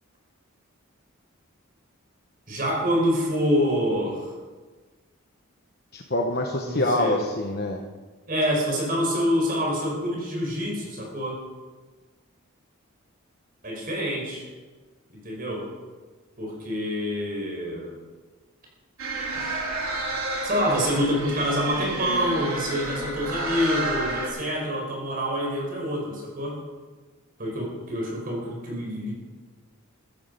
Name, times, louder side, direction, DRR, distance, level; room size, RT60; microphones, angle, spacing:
voice 1, 2.5-4.3 6.6-7.2 8.3-11.4 13.6-14.5 15.1-15.7 16.4-18.0 20.4-26.6 27.4-29.2, equal, 40° right, -1 dB, 4.9 m, -26 dB
voice 2, 5.9-7.8, left 1 dB, 45° left, 2 dB, 1.1 m, -25 dB
sound 1, 19.0-24.3, right 2 dB, 75° right, 4.3 m, -30 dB
15.0 x 14.0 x 5.3 m, 1.3 s
head